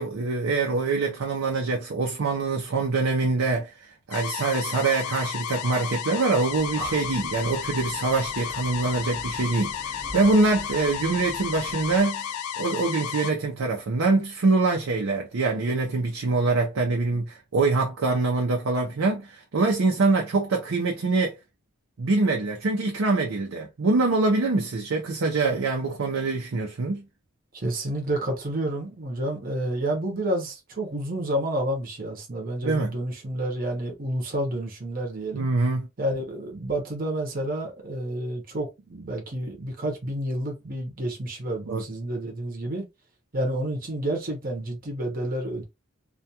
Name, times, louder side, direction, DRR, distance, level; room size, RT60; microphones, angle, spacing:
voice 1, 0.0-21.3 22.0-27.0 32.6-32.9 35.3-35.9 41.7-41.8, right 3 dB, 80° right, 0.5 m, -24 dB
sound 1, 4.1-13.3, left 8 dB, 90° left, 0.3 m, -33 dB
Breathing, 6.4-12.1, right 1 dB, 10° right, 0.5 m, -42 dB
voice 2, 27.5-35.5 36.0-42.9 43.3-45.6, right 1 dB, 45° right, 0.8 m, -29 dB
2.3 x 2.3 x 2.7 m
head